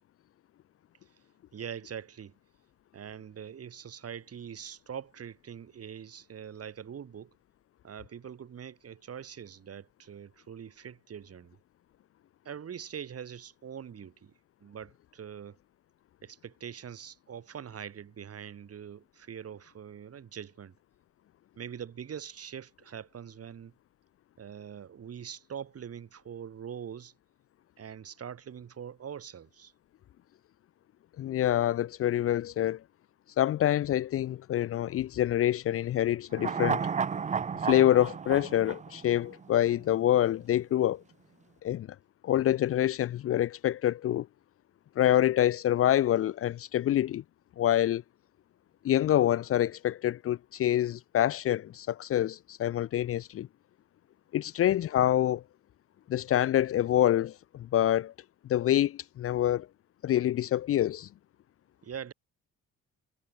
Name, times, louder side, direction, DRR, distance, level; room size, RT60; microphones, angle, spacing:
voice 1, 1.5-2.3 2.9-7.3 7.8-11.6 12.4-14.3 14.6-15.6 16.2-20.7 21.6-23.7 24.4-27.1 27.8-29.7 61.8-62.1, right 8 dB, 50° right, 3.3 m, -43 dB
voice 2, 31.2-32.8 33.4-36.9 37.6-41.0 41.6-41.9 42.2-44.3 45.0-47.2 47.6-48.0 48.8-53.5 54.3-55.4 56.1-58.1 58.5-59.7 60.0-61.1, left 12 dB, 50° left, 0.4 m, -26 dB
sound 1, 36.3-39.7 40.0-40.1, right 6 dB, 25° right, 0.5 m, -32 dB
cardioid pair, 90°, 30 cm